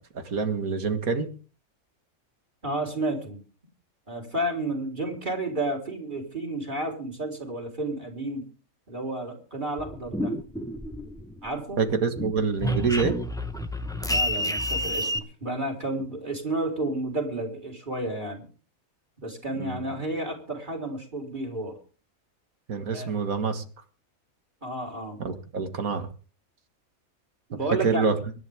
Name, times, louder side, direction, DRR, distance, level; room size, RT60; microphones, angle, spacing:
voice 1, 0.1-1.3 11.8-13.2 19.5-19.8 22.7-23.7 25.2-26.1 27.8-28.2, right 5 dB, 85° right, 7 dB, 2.1 m, -26 dB
voice 2, 2.6-3.4 4.1-8.5 8.9-10.3 11.4-11.8 14.0-18.5 19.2-21.8 22.9-23.1 24.6-25.2 27.5-28.0, right 1 dB, 35° right, 1 dB, 4.1 m, -31 dB
sound 1, 9.8-11.5 11.8-15.2, equal, 5° left, 0.9 m, -29 dB
24.0 x 11.0 x 3.6 m, 0.37 s
omnidirectional pair, 1.4 m